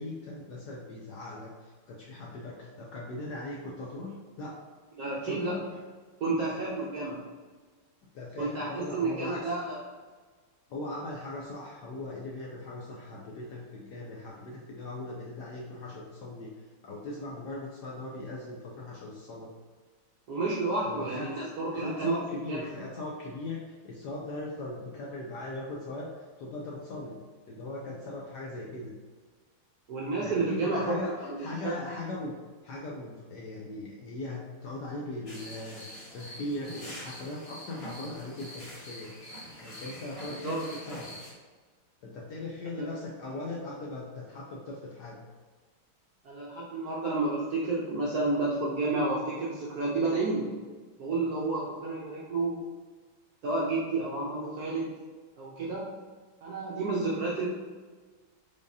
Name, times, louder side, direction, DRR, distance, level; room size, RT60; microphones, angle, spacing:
voice 1, 0.0-4.6 5.2-5.8 8.1-9.5 10.7-16.5 16.8-19.5 20.8-21.3 21.7-27.2 27.5-29.0 30.2-31.1 31.4-32.3 32.6-35.9 36.1-39.1 39.6-41.1 42.0-45.2, left 2 dB, 70° left, -3 dB, 1.0 m, -39 dB
voice 2, 5.0-5.6 6.2-7.2 8.4-9.8 20.3-22.2 22.5-22.6 29.9-31.8 40.4-40.6 42.8-43.0 46.2-50.5 51.0-52.7 53.4-55.0 55.4-55.9 56.4-57.5, right 3 dB, 70° right, -5 dB, 0.9 m, -30 dB
sound 1, 35.3-41.3, equal, 35° left, 0.5 m, -45 dB
4.9 x 3.5 x 2.7 m, 1.4 s
omnidirectional pair, 2.3 m